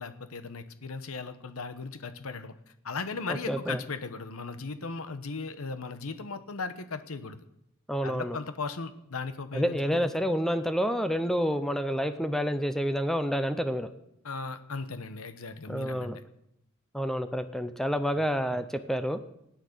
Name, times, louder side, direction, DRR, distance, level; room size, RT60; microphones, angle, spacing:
voice 1, 0.0-2.5 2.8-7.4 8.0-10.0 14.2-16.2 18.2-18.3, left 4 dB, 90° left, 11 dB, 1.0 m, -37 dB
voice 2, 3.5-3.8 7.9-8.4 9.5-13.9 15.7-16.2 16.9-19.2, equal, ahead, 9 dB, 0.6 m, -28 dB
17.0 x 9.4 x 6.7 m, 0.80 s
head